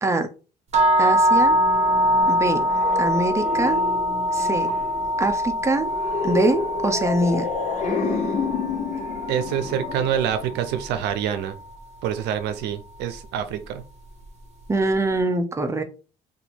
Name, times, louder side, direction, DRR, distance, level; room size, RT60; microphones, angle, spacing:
sound 1, 0.7-10.8, equal, 40° right, 0.9 m, -23 dB
voice 1, 1.0-1.6 2.3-2.7 3.0-3.8 4.3-4.7 5.2-5.9 6.2-7.5 14.7-15.8, right 2 dB, 15° right, 6 dB, 0.6 m, -23 dB
sound 2, 1.3-11.1, left 4 dB, 45° left, 0.8 m, -30 dB
voice 2, 9.3-11.6 12.0-13.8, right 9 dB, 90° right, 9 dB, 0.6 m, -26 dB
2.8 x 2.6 x 4.2 m, 0.34 s
cardioid pair, 110°, 17 cm